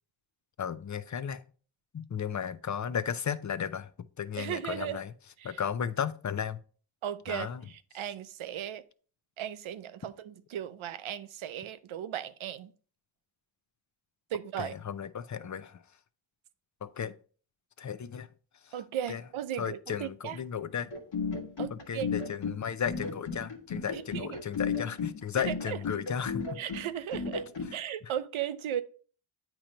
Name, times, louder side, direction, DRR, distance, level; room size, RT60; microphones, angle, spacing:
voice 1, 0.6-1.4 1.9-3.9 4.2-5.1 5.4-6.6 7.3-7.6 14.6-15.8 16.8-17.1 17.8-18.3 18.6-18.7 19.1-19.2 19.6-20.9 21.9-26.4 27.7-27.8, left 8 dB, 40° left, 0.6 m, -34 dB
voice 2, 4.4-5.0 5.4-5.6 7.0-8.8 9.4-12.7 14.3-14.7 18.7-20.4 21.6-22.1 23.9-24.4 25.4-25.8 26.6-27.4 27.7-28.8, right 10 dB, 90° right, 0.6 m, -36 dB
sound 1, 20.9-27.7, left 5 dB, 70° left, 1.5 m, -34 dB
8.6 x 3.0 x 5.1 m
cardioid pair, 55°, 47 cm